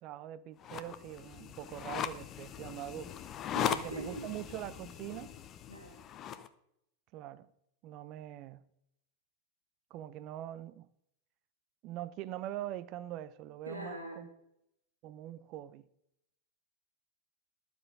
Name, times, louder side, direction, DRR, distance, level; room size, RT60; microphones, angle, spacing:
voice 1, 0.0-3.1 3.6-5.4 7.1-7.5 7.8-8.6 9.9-10.9 11.8-14.3 15.0-15.9, right 13 dB, 40° right, 0.6 m, -43 dB
sound 1, 0.6-6.5, left 9 dB, 30° left, 0.8 m, -39 dB
voice 2, 3.5-4.3 5.7-6.0 13.7-14.3, right 1 dB, 85° right, 1.8 m, -43 dB
12.0 x 7.2 x 5.5 m
figure-of-eight pair, 90°, 0 cm